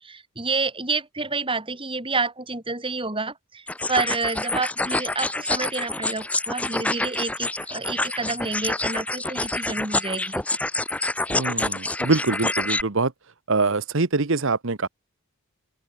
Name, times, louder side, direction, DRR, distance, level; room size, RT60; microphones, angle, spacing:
voice 1, 0.0-10.4, right 3 dB, 25° right, 5.8 m, -29 dB
sound 1, 3.7-12.8, left 2 dB, 5° left, 0.6 m, -27 dB
voice 2, 11.3-13.1 13.5-14.9, right 3 dB, 60° right, 1.1 m, -24 dB
open air
head